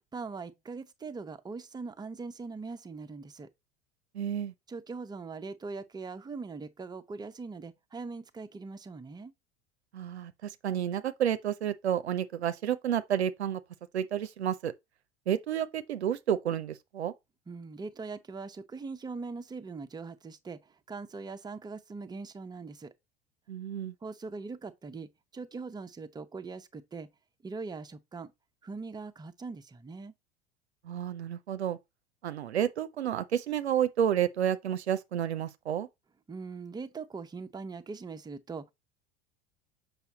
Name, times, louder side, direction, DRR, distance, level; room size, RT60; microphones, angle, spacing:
voice 1, 0.1-3.5 4.7-9.3 17.5-22.9 24.0-27.1 27.4-28.3 28.6-30.1 36.3-38.7, right 4 dB, 10° right, 0.8 m, -41 dB
voice 2, 4.1-4.5 9.9-13.6 13.9-14.7 15.3-17.1 23.5-23.9 30.8-31.8 32.2-35.9, right 9 dB, 80° right, 0.7 m, -30 dB
6.9 x 5.7 x 2.9 m
figure-of-eight pair, 75°, 32 cm